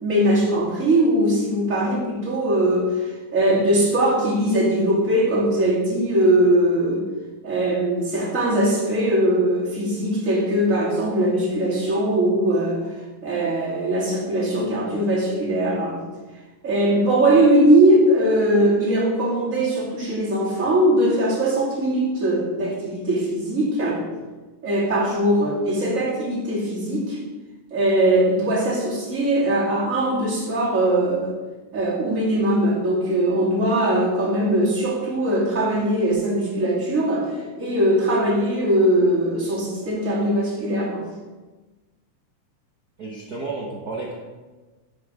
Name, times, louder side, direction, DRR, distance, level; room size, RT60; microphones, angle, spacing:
voice 1, 0.0-7.1 7.4-12.8 13.2-16.0 16.6-24.0 24.6-27.2 27.7-31.3 31.7-37.3 37.6-41.0, right 1 dB, 25° right, -5 dB, 2.8 m, -20 dB
voice 2, 43.0-44.1, right 3 dB, 60° right, -1 dB, 1.0 m, -31 dB
10.0 x 7.9 x 4.9 m, 1.3 s
omnidirectional pair, 3.5 m